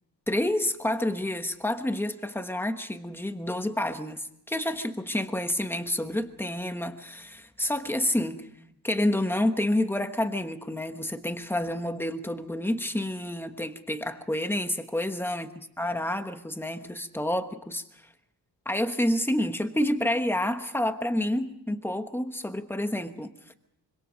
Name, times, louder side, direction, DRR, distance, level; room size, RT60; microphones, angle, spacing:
voice 1, 0.3-8.5 8.8-15.5 15.8-17.8 18.6-23.3, left 1 dB, 5° left, 8 dB, 1.2 m, -29 dB
25.5 x 25.0 x 5.2 m, 0.77 s
wide cardioid pair, 175°, 39 cm